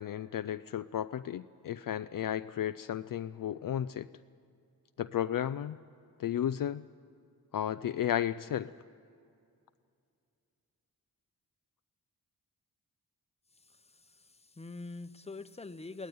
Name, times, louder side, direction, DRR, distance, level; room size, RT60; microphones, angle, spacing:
voice 1, 0.0-4.1 5.0-5.8 6.2-6.9 7.5-8.7, left 10 dB, 60° left, 12 dB, 0.5 m, -33 dB
voice 2, 13.5-16.1, left 3 dB, 15° left, 11 dB, 0.9 m, -45 dB
22.0 x 17.5 x 9.5 m, 2.4 s
cardioid pair, 75°, 38 cm